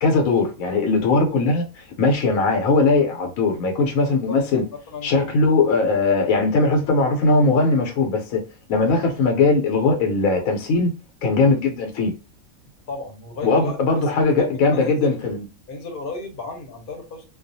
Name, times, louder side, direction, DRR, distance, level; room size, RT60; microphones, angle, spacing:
voice 1, 0.0-4.6 5.0-8.4 8.7-10.9 11.2-12.1 13.4-15.4, left 3 dB, 80° left, 1.0 m, -19 dB
voice 2, 4.0-5.2 12.9-13.8 14.4-15.2 15.7-17.2, left 3 dB, 50° left, 0.8 m, -34 dB
2.3 x 2.3 x 2.6 m
omnidirectional pair, 1.4 m